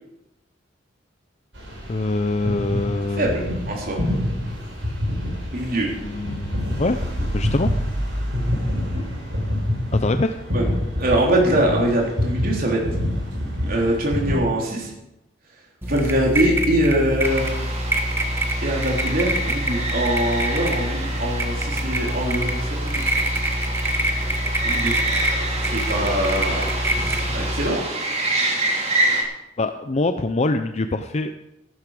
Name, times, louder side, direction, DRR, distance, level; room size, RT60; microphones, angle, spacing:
sound 1, 1.5-14.4, left 1 dB, 75° right, 5.2 m, -26 dB
voice 1, 1.9-3.3 6.0-7.0 7.3-7.7 9.9-10.4 27.0-27.5 29.6-31.3, left 2 dB, 35° left, 8 dB, 0.6 m, -24 dB
voice 2, 3.2-4.0 5.5-5.9 10.5-10.7 11.0-12.8 13.7-14.9 15.8-17.6 18.6-23.0 24.6-25.0 25.7-26.7 26.9-27.9, right 1 dB, 50° right, -1 dB, 3.6 m, -23 dB
sound 2, 15.8-27.7, right 1 dB, 15° right, 1.4 m, -25 dB
sound 3, 17.2-29.2, right 2 dB, 35° right, 2.7 m, -28 dB
14.0 x 12.0 x 5.0 m, 0.88 s
head